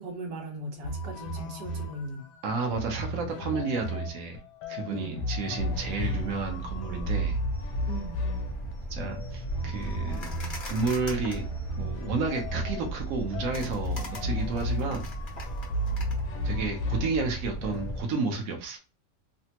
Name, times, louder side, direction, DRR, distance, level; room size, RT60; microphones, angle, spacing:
voice 1, 0.0-2.3 4.9-5.3 7.9-8.2, right 1 dB, 75° right, 1.3 m, -38 dB
sound 1, 0.8-18.1, equal, 75° left, 1.2 m, -34 dB
voice 2, 2.4-4.4 4.7-7.4 8.9-10.3 10.6-11.4 11.7-15.0 16.4-18.8, right 4 dB, 60° right, 1.1 m, -31 dB
sound 2, 5.6-18.0, right 2 dB, 45° left, 0.7 m, -37 dB
3.3 x 2.1 x 2.8 m
omnidirectional pair, 1.9 m